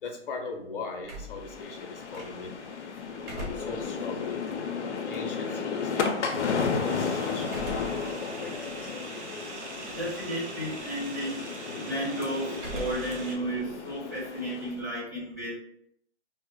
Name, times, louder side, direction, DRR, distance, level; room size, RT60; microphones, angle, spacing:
voice 1, 0.0-2.5 3.5-4.4 5.0-8.1 8.4-8.9, left 4 dB, 50° left, 2 dB, 0.7 m, -40 dB
sound 1, 1.0-2.7 3.1-5.6 7.4-8.1 8.6-8.7 9.8-10.3 10.6-11.0 12.5-13.2 13.5-14.9, equal, 55° right, 1.0 m, -42 dB
sound 2, 1.3-14.8, left 5 dB, 85° left, 0.5 m, -33 dB
voice 2, 3.0-3.7 9.9-15.6, right 1 dB, 15° right, -8 dB, 0.4 m, -34 dB
sound 3, 6.8-13.3, right 2 dB, 80° right, 0.7 m, -42 dB
2.1 x 2.0 x 2.9 m, 0.73 s
hypercardioid pair, 150°, 34 cm